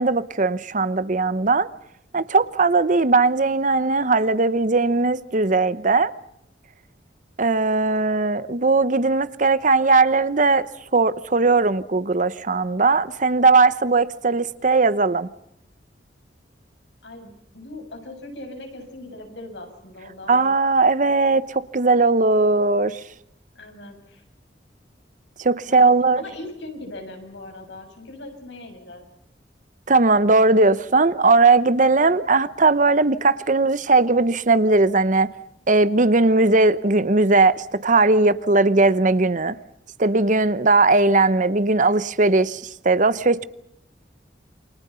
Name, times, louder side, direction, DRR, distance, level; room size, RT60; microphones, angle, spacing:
voice 1, 0.0-1.7 2.1-6.1 7.4-10.7 10.9-15.3 20.3-23.0 25.4-26.2 29.9-35.3 35.7-39.6 40.0-43.4, right 3 dB, 45° right, 0.9 m, -18 dB
voice 2, 17.0-20.4 23.5-24.2 25.6-29.0, left 2 dB, 80° left, 6.9 m, -39 dB
28.5 x 25.5 x 5.7 m
head